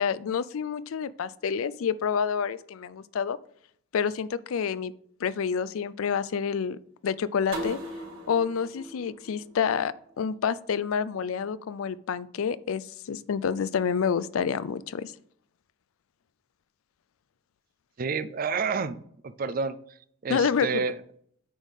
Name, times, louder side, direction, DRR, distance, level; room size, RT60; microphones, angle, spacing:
voice 1, 0.0-3.4 3.9-4.9 5.2-6.8 7.0-7.8 8.3-15.1 20.3-20.8, left 6 dB, 80° left, 17 dB, 0.4 m, -28 dB
sound 1, 7.5-10.3, right 1 dB, 80° right, 3.5 m, -39 dB
voice 2, 18.0-19.8 20.2-20.9, right 5 dB, 40° right, 13 dB, 0.4 m, -29 dB
9.2 x 3.6 x 6.4 m, 0.65 s
head